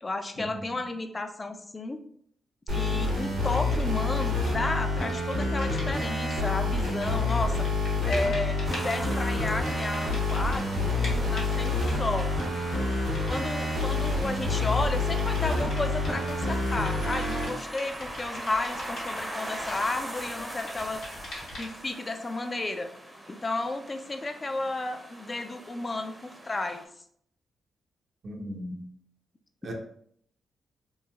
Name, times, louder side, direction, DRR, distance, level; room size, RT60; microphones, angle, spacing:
voice 1, 0.0-2.0 2.7-7.7 8.0-12.4 13.3-21.0 21.5-22.9 23.3-26.8 29.6-29.7, left 2 dB, 35° left, 7 dB, 0.3 m, -33 dB
sound 1, 2.7-17.5, left 2 dB, 85° right, 1.2 m, -28 dB
sound 2, 3.2-4.6 4.9-21.9, left 1 dB, 80° left, 0.9 m, -45 dB
sound 3, 8.6-26.8, right 1 dB, 20° right, 0.6 m, -41 dB
voice 2, 28.2-28.9 29.6-29.7, equal, 60° right, 2 dB, 0.6 m, -37 dB
3.0 x 2.4 x 2.3 m, 0.66 s
supercardioid pair, 55°, 0 cm